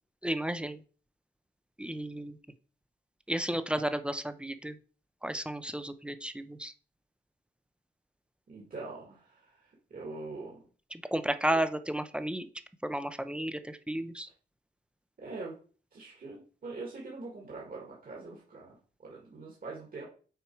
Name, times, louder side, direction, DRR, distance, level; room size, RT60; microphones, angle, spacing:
voice 1, 0.2-0.8 1.8-2.4 3.3-4.8 5.2-6.7 10.9-12.5 12.8-14.3, right 1 dB, 5° right, 11 dB, 0.5 m, -33 dB
voice 2, 8.5-10.6 15.2-15.5 15.9-18.8 19.0-20.1, right 3 dB, 50° right, -3 dB, 1.9 m, -43 dB
6.9 x 4.4 x 4.5 m, 0.41 s
wide cardioid pair, 120°, 19 cm